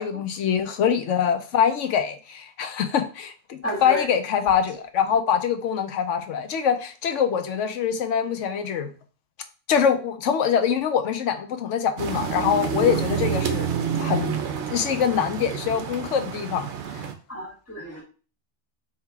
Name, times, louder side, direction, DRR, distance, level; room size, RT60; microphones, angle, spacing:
voice 1, 0.0-8.9 9.7-13.7 14.0-14.4 14.7-16.7 16.9-17.0, left 8 dB, 85° left, 8 dB, 1.0 m, -24 dB
voice 2, 3.6-4.0 17.3-18.0, left 2 dB, 10° left, -4 dB, 1.7 m, -30 dB
sound 1, 12.0-17.1, right 8 dB, 70° right, 1.0 m, -28 dB
3.6 x 2.9 x 4.6 m, 0.36 s
omnidirectional pair, 1.2 m